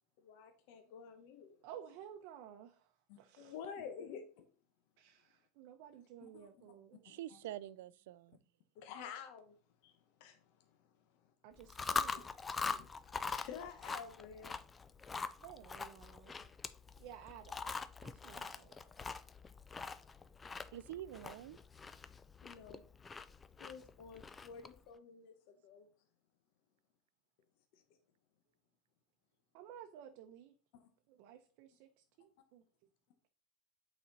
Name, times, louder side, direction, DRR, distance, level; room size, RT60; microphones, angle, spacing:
voice 1, 0.2-1.6 3.1-4.4 6.2-6.5 7.1-7.2 8.8-9.5 9.8-10.4 12.6-12.9 13.3-14.5 22.4-22.8 23.6-25.9, left 7 dB, 60° left, 1.0 m, -50 dB
voice 2, 1.6-3.5 5.0-7.1 11.4-12.3 15.4-16.3 17.0-17.6 18.0-18.8 29.5-30.5 31.1-32.6, right 9 dB, 55° right, 0.7 m, -54 dB
voice 3, 7.0-8.4 20.7-21.6, right 13 dB, 85° right, 0.3 m, -46 dB
Chewing mastication, 11.6-24.8, left 4 dB, 15° left, 0.4 m, -43 dB
8.4 x 4.2 x 4.1 m
supercardioid pair, 155°, 0 cm